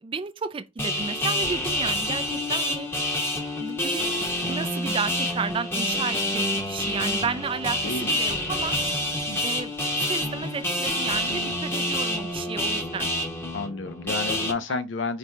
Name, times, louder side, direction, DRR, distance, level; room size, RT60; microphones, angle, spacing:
voice 1, 0.0-2.9 3.6-4.1 4.5-8.8 9.4-13.1 14.7-14.8, right 5 dB, 25° right, 0.3 m, -32 dB
sound 1, 0.8-14.5, left 1 dB, 10° left, 0.8 m, -27 dB
voice 2, 7.8-8.1 9.3-9.6 13.5-15.2, left 4 dB, 70° left, 0.6 m, -31 dB
4.9 x 2.2 x 4.4 m
head